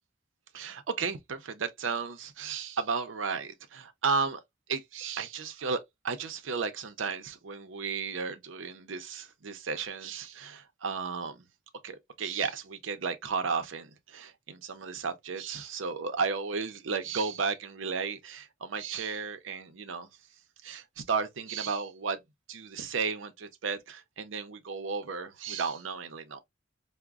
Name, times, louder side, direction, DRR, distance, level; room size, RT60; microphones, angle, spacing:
voice 1, 0.5-4.4 4.7-11.4 11.8-20.1 20.6-22.2 22.5-26.4, right 5 dB, 90° right, 0.6 m, -34 dB
4.9 x 2.1 x 2.3 m
head